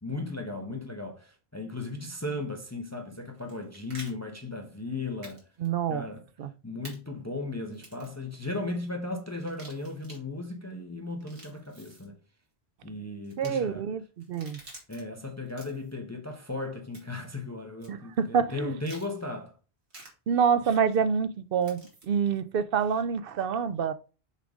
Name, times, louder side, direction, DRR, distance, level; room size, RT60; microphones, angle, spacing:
voice 1, 0.0-5.5 5.9-6.2 6.6-12.2 12.8-13.9 14.9-19.6, left 2 dB, 15° left, 0.8 m, -36 dB
sound 1, 3.3-4.1 5.2-5.4 5.6-5.7 6.8-7.0 7.7-8.2 9.4-10.2 11.1-12.1 13.2-13.5 14.2-15.0 15.5-15.9 16.9-17.3 17.8-17.9 18.8-19.1 19.9-20.1 21.6-22.0, right 2 dB, 90° right, 2.6 m, -49 dB
voice 2, 5.6-6.1 6.4-6.5 13.4-14.6 17.9-18.8 20.3-23.9, right 6 dB, 65° right, 0.7 m, -27 dB
6.5 x 3.8 x 4.9 m
omnidirectional pair, 1.1 m